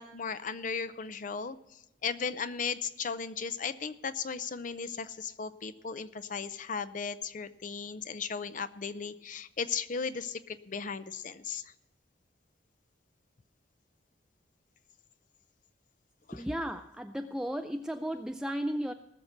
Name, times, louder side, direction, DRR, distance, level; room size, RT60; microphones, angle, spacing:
voice 1, 0.0-11.7 16.3-16.5, left 5 dB, 45° left, 12 dB, 0.5 m, -36 dB
voice 2, 16.3-18.9, equal, 5° right, 6 dB, 0.4 m, -34 dB
19.0 x 6.6 x 5.9 m, 0.94 s
head